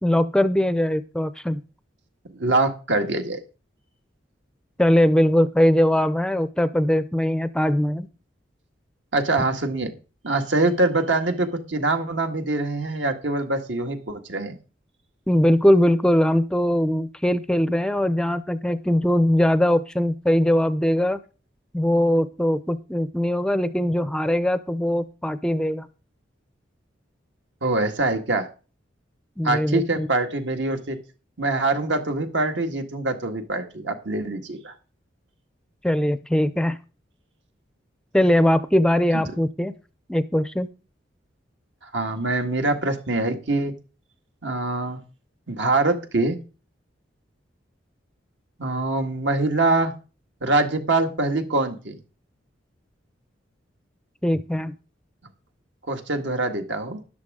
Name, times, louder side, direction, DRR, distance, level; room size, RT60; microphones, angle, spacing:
voice 1, 0.0-1.6 4.8-8.1 15.3-21.2 21.7-25.9 29.4-30.1 35.8-36.8 38.1-39.7 40.1-40.7 54.2-54.7, left 1 dB, 5° left, 13 dB, 0.5 m, -21 dB
voice 2, 2.3-3.4 9.1-9.9 10.2-14.5 27.6-28.5 29.4-31.0 31.4-34.7 39.1-39.2 41.8-43.7 44.4-45.0 45.5-46.4 48.6-49.9 50.4-52.0 55.9-57.0, right 2 dB, 75° right, 5 dB, 1.8 m, -24 dB
12.5 x 10.0 x 3.7 m, 0.34 s
head